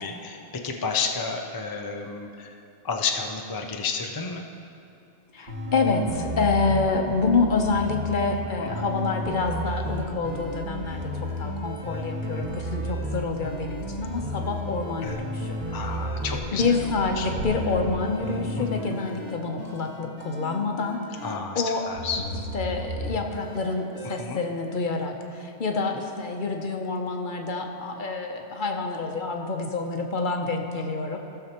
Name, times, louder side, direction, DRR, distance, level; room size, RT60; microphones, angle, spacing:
voice 1, 0.0-2.6 2.8-4.5 8.6-8.7 15.0-15.3 15.7-17.3 18.6-19.0 21.2-22.2 24.0-24.4, left 5 dB, 30° left, 2 dB, 0.4 m, -31 dB
voice 2, 5.3-15.6 16.5-21.3 21.5-21.8 22.5-31.4, left 4 dB, 50° left, 3 dB, 0.8 m, -27 dB
sound 1, 5.5-21.4 22.0-24.2, equal, 40° right, 1.5 m, -33 dB
sound 2, 12.8-19.8, right 2 dB, 80° right, 1.4 m, -43 dB
16.0 x 6.8 x 2.9 m, 2.7 s
omnidirectional pair, 1.1 m